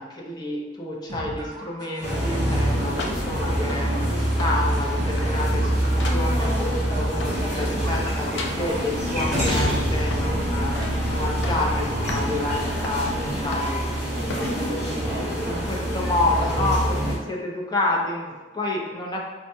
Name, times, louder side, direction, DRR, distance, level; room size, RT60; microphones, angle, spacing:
voice 1, 0.0-13.9 14.2-19.2, left 2 dB, 25° left, -2 dB, 0.5 m, -29 dB
sound 1, 1.1-10.1, right 1 dB, 45° right, 0.5 m, -37 dB
sound 2, 2.0-17.1, equal, 40° left, 1.4 m, -25 dB
sound 3, 2.3-4.1 4.4-4.9 5.2-7.6 7.8-9.0 9.5-10.4 10.7-11.0 11.3-11.7 12.1-12.3 12.8-13.0 13.5-13.9 14.3-14.6 15.2-15.3, left 2 dB, 75° left, 0.4 m, -36 dB
4.3 x 2.1 x 2.6 m, 1.3 s
head